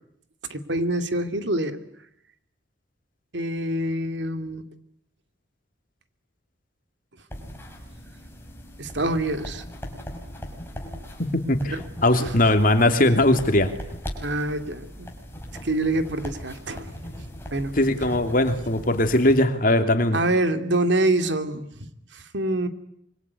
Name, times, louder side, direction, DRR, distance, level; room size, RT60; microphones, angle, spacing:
voice 1, 0.5-1.8 3.3-4.6 8.8-9.6 11.6-11.8 12.2-12.4 14.2-15.1 15.6-16.9 17.5-17.8 20.1-21.9 22.1-22.7, right 1 dB, 70° right, 9 dB, 2.4 m, -26 dB
sound 1, 7.3-19.4, equal, 10° left, 5.6 m, -39 dB
voice 2, 11.2-11.8 12.0-13.7 17.7-20.2, left 1 dB, 45° left, 7 dB, 2.9 m, -20 dB
25.5 x 24.0 x 9.6 m, 0.73 s
head